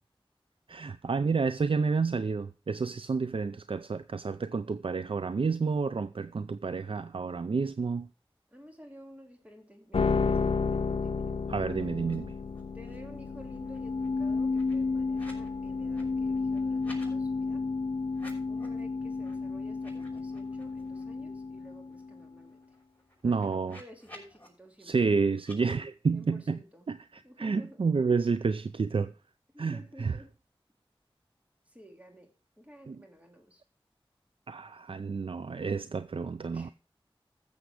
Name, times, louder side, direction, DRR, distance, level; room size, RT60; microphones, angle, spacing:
voice 1, 0.7-8.1 11.5-12.3 23.2-23.8 24.8-26.6 26.9-29.1 29.6-30.2 32.9-33.0 34.5-36.7, right 4 dB, 70° right, 0.4 m, -30 dB
voice 2, 8.5-11.4 12.7-17.7 18.5-22.6 23.2-25.1 26.1-26.9 27.2-27.9 29.5-30.3 31.7-32.3 32.6-33.6 36.5-36.7, equal, 15° right, 2.9 m, -53 dB
sound 1, 9.9-22.2, left 4 dB, 80° left, 0.6 m, -31 dB
sound 2, 12.0-12.2 12.4-13.1 13.4-15.5 15.8-17.1 18.1-18.8 19.2-19.3 19.7-21.0 21.4-21.5 21.8-24.5 25.4-25.6, left 1 dB, 15° left, 5.8 m, -54 dB
14.0 x 7.0 x 4.9 m
wide cardioid pair, 45°, 10 cm